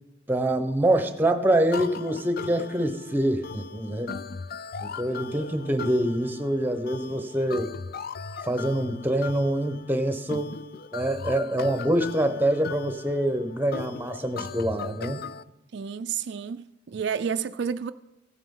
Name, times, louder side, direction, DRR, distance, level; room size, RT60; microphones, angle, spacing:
voice 1, 0.3-4.2 4.8-7.7 8.4-10.6 10.9-15.2, right 1 dB, 10° right, 0.9 m, -25 dB
sound 1, 1.7-15.4, left 5 dB, 55° left, 0.4 m, -38 dB
voice 2, 15.7-17.9, right 7 dB, 65° right, 0.4 m, -30 dB
16.0 x 9.3 x 3.8 m
head